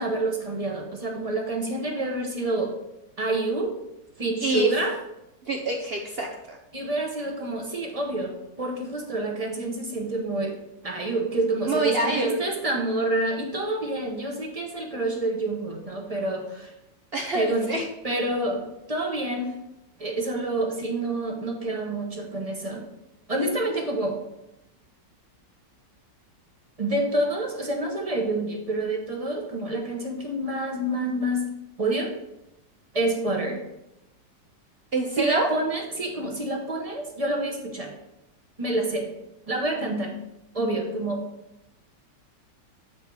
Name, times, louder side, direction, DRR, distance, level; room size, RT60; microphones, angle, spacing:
voice 1, 0.0-2.7 3.2-3.7 4.2-4.9 6.7-10.5 10.8-16.7 17.3-17.7 18.0-19.5 20.0-22.8 23.3-24.2 26.8-31.5 31.8-32.1 32.9-33.6 35.2-37.9 38.6-39.1 39.5-40.2 40.5-41.2, right 2 dB, 25° right, 1 dB, 0.9 m, -27 dB
voice 2, 5.4-6.6 11.7-12.4 17.1-17.9 34.9-35.5, right 2 dB, 55° right, 1 dB, 0.6 m, -26 dB
8.6 x 4.1 x 4.7 m, 0.87 s
omnidirectional pair, 1.9 m